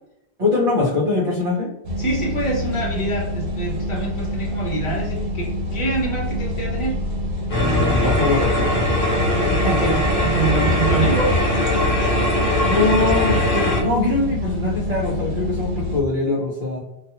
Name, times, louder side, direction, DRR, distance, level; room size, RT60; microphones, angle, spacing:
voice 1, 0.4-1.7 7.6-9.0 12.6-16.8, left 3 dB, 45° right, -7 dB, 0.7 m, -22 dB
sound 1, 1.8-16.0, left 1 dB, 90° right, 0.9 m, -27 dB
voice 2, 2.0-6.9 9.3-11.3, right 3 dB, 35° left, -3 dB, 0.8 m, -25 dB
sound 2, 7.5-13.8, left 1 dB, 65° left, 0.9 m, -20 dB
2.4 x 2.4 x 2.8 m, 0.91 s
omnidirectional pair, 1.0 m